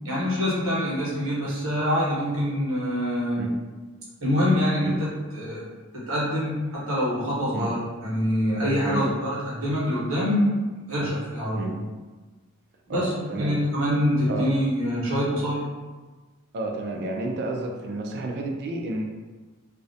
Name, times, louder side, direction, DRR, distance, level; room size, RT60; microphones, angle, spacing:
voice 1, 0.0-3.5 4.2-5.6 5.9-10.5 10.8-11.7 12.9-13.1 13.4-15.6, equal, 70° right, -7 dB, 0.9 m, -25 dB
voice 2, 12.9-13.6 14.3-14.5 16.5-19.0, right 2 dB, 50° right, 1 dB, 0.3 m, -31 dB
2.4 x 2.0 x 2.7 m, 1.3 s
head